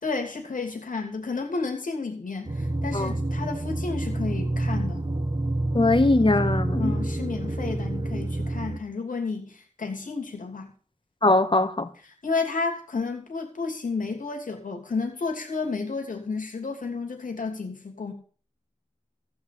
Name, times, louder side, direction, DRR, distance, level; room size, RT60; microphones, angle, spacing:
voice 1, 0.0-5.0 6.8-10.7 12.0-18.1, left 4 dB, 90° left, 2.9 m, -31 dB
sound 1, 2.5-8.8, right 1 dB, 35° right, 1.2 m, -28 dB
voice 2, 5.7-6.9 11.2-11.9, left 2 dB, 40° left, 1.6 m, -21 dB
14.5 x 5.0 x 8.6 m
cardioid pair, 45°, 13 cm